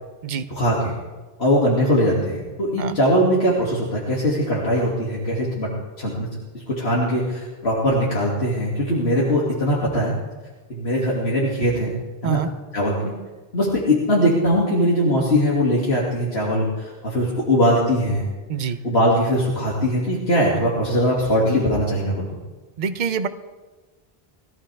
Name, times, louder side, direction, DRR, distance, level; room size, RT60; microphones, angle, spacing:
voice 1, 0.5-0.9 1.4-5.7 6.0-6.3 6.5-10.1 10.7-11.9 12.2-12.4 12.7-13.1 13.5-18.3 18.8-22.2, equal, 90° left, -5 dB, 2.7 m, -21 dB
voice 2, 22.8-23.3, right 6 dB, 50° right, 10 dB, 0.9 m, -25 dB
21.5 x 14.5 x 3.5 m, 1.3 s
omnidirectional pair, 1.0 m